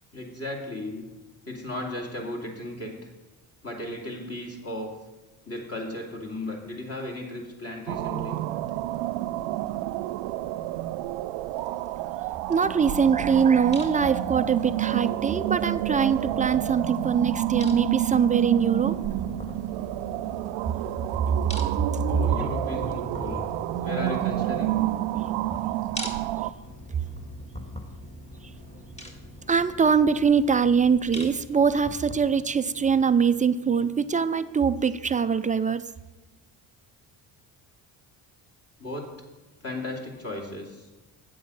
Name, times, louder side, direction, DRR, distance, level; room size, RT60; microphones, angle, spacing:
voice 1, 0.1-1.0 1.4-3.1 3.6-4.9 5.5-8.4 22.0-23.4 23.8-24.8 38.8-39.1 39.6-40.9, left 1 dB, 30° left, 0 dB, 2.4 m, -35 dB
sound 1, 7.9-26.5, right 15 dB, 80° right, 0.5 m, -29 dB
voice 2, 12.5-19.0 29.5-35.8, right 6 dB, 20° right, 12 dB, 0.4 m, -23 dB
sound 2, 12.6-32.2, left 1 dB, 15° left, 1.7 m, -43 dB
sound 3, 25.5-34.1, equal, 50° left, 3.0 m, -50 dB
8.4 x 7.6 x 5.5 m, 1.1 s
supercardioid pair, 75°, 45 cm